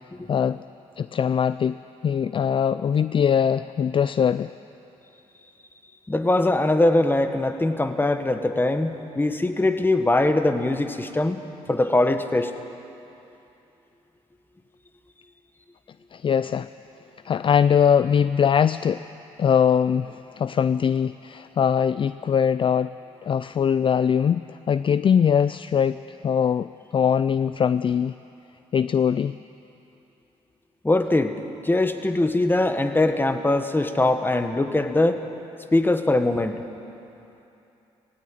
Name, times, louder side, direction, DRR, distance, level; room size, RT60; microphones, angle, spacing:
voice 1, 1.0-1.7 2.0-4.5 16.1-16.7 17.2-19.0 19.4-22.9 23.2-24.4 24.7-26.0 26.2-28.1 28.7-29.3, left 7 dB, 45° left, 14 dB, 0.4 m, -21 dB
voice 2, 6.1-11.4 11.7-12.5 30.8-35.2 35.7-36.6, left 2 dB, 15° left, 8 dB, 1.5 m, -22 dB
17.5 x 17.0 x 9.1 m, 2.8 s
supercardioid pair, 65°, 13 cm